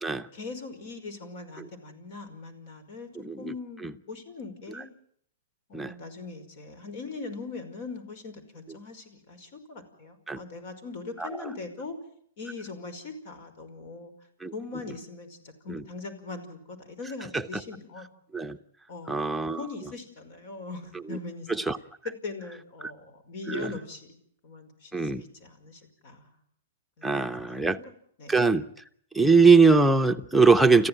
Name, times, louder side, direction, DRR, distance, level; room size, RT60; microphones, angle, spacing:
voice 1, 0.3-3.1 3.4-4.9 5.7-12.0 12.4-14.1 14.5-18.1 18.9-19.2 19.6-21.5 22.0-24.2 24.4-26.3 27.0-27.9 28.2-28.4, left 3 dB, 55° left, 5.4 m, -41 dB
voice 2, 3.2-3.5 3.8-3.9 5.7-5.9 10.3-10.4 11.2-11.5 14.4-14.5 15.7-15.8 17.3-17.4 18.3-18.6 19.1-19.6 21.1-21.2 21.6-21.8 23.5-23.7 24.9-25.2 27.0-27.8 28.3-28.7 29.1-30.9, right 4 dB, ahead, 1.0 m, -21 dB
28.5 x 15.0 x 9.2 m
hypercardioid pair, 125°, 0 cm